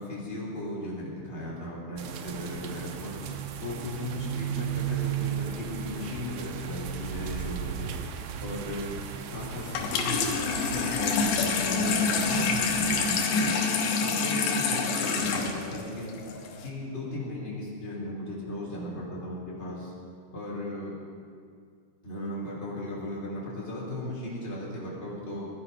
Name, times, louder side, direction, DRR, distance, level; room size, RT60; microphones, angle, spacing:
voice 1, 0.0-3.2 3.6-8.0 8.4-9.0 9.3-13.6 14.0-16.2 16.6-19.9 20.3-21.0 22.0-25.5, left 1 dB, 15° left, -5 dB, 3.5 m, -36 dB
sound 1, 2.0-13.1, right 9 dB, 75° right, 2.6 m, -36 dB
Water tap faucet / Sink (filling or washing), 9.6-16.7, left 4 dB, 85° left, 3.5 m, -27 dB
18.0 x 12.0 x 5.6 m, 2.2 s
omnidirectional pair, 4.8 m